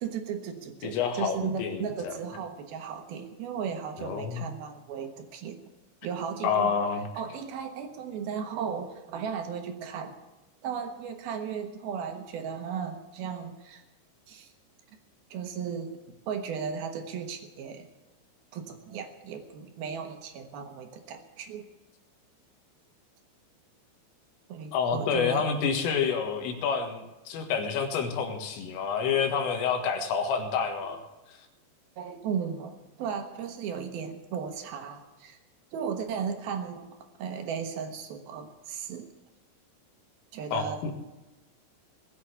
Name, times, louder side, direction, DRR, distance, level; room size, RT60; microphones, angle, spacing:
voice 1, 0.0-5.6 6.0-6.7 7.2-10.1 10.6-13.8 14.3-14.5 15.3-16.0 16.3-17.9 18.5-21.7 24.5-25.5 32.0-35.4 35.7-36.9 37.2-39.1 40.3-40.8, right 7 dB, 65° right, 6 dB, 2.7 m, -35 dB
voice 2, 0.8-2.1 4.0-4.4 6.4-7.1 24.7-31.0 40.5-40.9, left 6 dB, 90° left, 5 dB, 4.3 m, -28 dB
20.0 x 8.4 x 8.2 m, 1.1 s
omnidirectional pair, 5.6 m